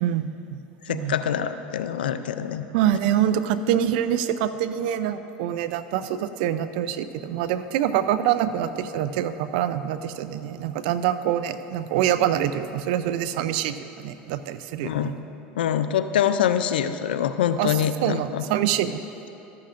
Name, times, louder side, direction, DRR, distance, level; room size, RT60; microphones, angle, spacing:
voice 1, 0.0-0.6 0.9-1.1 2.7-15.1 17.6-19.0, right 10 dB, 70° right, 12 dB, 0.5 m, -25 dB
voice 2, 0.8-2.6 14.8-15.1 15.6-18.4, left 9 dB, 90° left, 11 dB, 0.4 m, -25 dB
13.5 x 11.5 x 2.5 m, 2.9 s
hypercardioid pair, 95°, 5 cm